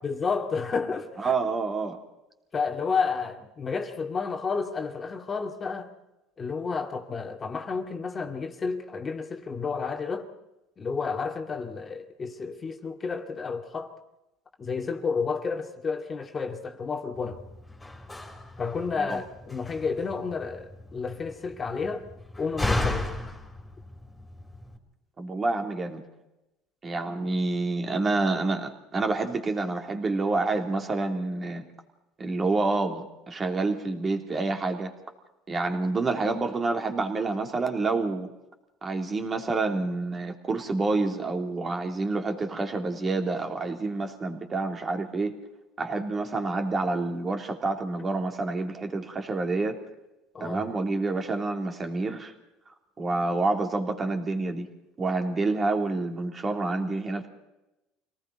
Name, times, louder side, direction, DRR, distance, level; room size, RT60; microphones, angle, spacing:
voice 1, 0.0-1.3 2.5-5.9 6.4-10.3 10.8-14.0 14.6-17.4 18.6-22.1 22.4-23.1 50.3-50.7, left 5 dB, 25° left, 2.2 m, -31 dB
voice 2, 1.2-2.0 19.0-19.2 25.2-26.0 26.8-31.6 32.2-34.9 35.5-38.3 38.8-45.3 45.8-49.8 50.4-52.3 52.7-54.7 55.0-57.3, right 3 dB, 25° right, 3.4 m, -28 dB
Slam, 17.1-24.8, left 2 dB, 10° left, 4.1 m, -35 dB
27.0 x 18.5 x 5.4 m
supercardioid pair, 115°, 0 cm